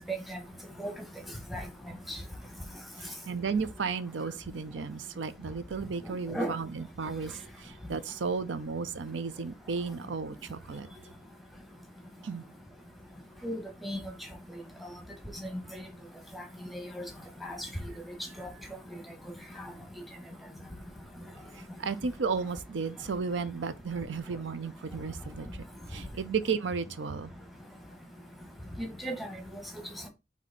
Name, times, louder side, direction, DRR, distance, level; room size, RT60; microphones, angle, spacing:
voice 1, 0.1-0.4 0.8-0.9 1.5-1.6 2.1-2.2 6.3-6.5 13.4-14.0 16.7-17.0 17.4-17.6 18.4-18.5 28.8-29.3, right 1 dB, ahead, 0.9 m, -34 dB
voice 2, 3.0-10.9 12.2-12.4 21.5-25.6 25.9-27.3, right 5 dB, 65° right, 0.5 m, -34 dB
4.6 x 2.8 x 4.1 m
head